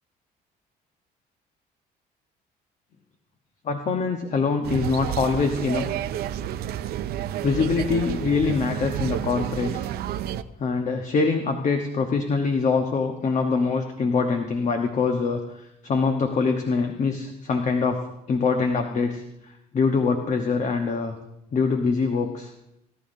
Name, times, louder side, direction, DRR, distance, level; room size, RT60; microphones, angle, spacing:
voice 1, 3.6-5.8 7.4-9.9 10.6-18.0 18.3-21.1 21.5-22.5, left 4 dB, 45° left, 4 dB, 1.1 m, -24 dB
sound 1, 4.6-10.4, right 11 dB, 70° right, 0.6 m, -30 dB
18.0 x 11.5 x 2.7 m, 0.85 s
cardioid pair, 110°, 17 cm